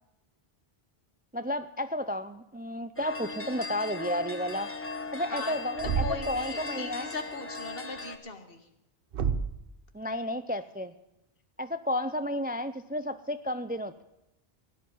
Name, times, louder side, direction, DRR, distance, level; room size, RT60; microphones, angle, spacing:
voice 1, 1.3-4.7 5.1-7.1 9.9-10.9 11.6-14.0, left 1 dB, 15° right, 11 dB, 0.4 m, -32 dB
sound 1, 3.0-8.2, left 3 dB, 15° left, 1.0 m, -38 dB
voice 2, 5.8-8.7, left 3 dB, 65° left, 7 dB, 1.8 m, -39 dB
Thump thud, 5.8-6.4 9.1-9.7, right 6 dB, 65° right, 1.0 m, -29 dB
16.5 x 11.0 x 5.5 m, 0.89 s
omnidirectional pair, 1.0 m